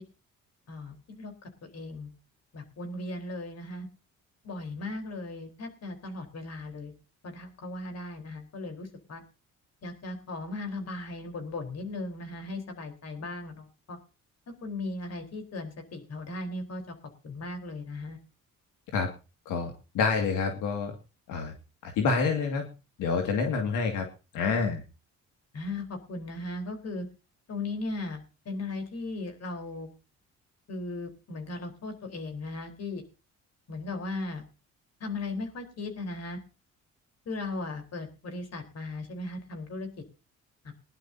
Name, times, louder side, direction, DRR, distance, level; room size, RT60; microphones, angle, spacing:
voice 1, 0.7-2.1 2.5-3.9 4.4-6.9 7.2-9.2 9.8-14.0 14.6-16.9 17.2-18.2 25.5-27.1 27.5-29.9 30.7-33.0 33.7-34.4 35.0-36.4 37.3-39.9 40.6-40.7, left 2 dB, 55° left, 6 dB, 4.1 m, -37 dB
voice 2, 19.5-20.9 21.3-21.5 21.8-22.6 23.0-24.0 24.3-24.8, left 5 dB, 90° left, 4 dB, 2.2 m, -27 dB
21.5 x 11.0 x 2.8 m, 0.31 s
cardioid pair, 90°, 30 cm